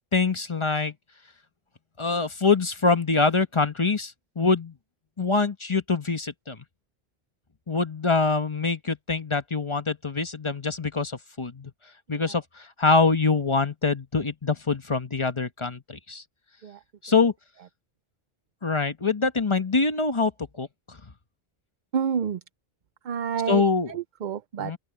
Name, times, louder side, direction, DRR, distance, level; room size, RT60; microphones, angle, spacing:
voice 1, 0.1-0.9 2.0-4.7 5.2-6.6 7.7-11.7 12.1-16.2 17.0-17.3 18.6-20.3 20.6-20.7 23.5-23.9 24.6-24.8, left 4 dB, 30° left, 1.1 m, -24 dB
voice 2, 21.9-22.4 23.0-23.6 23.9-24.7, right 7 dB, 55° right, 0.6 m, -29 dB
open air
omnidirectional pair, 1.1 m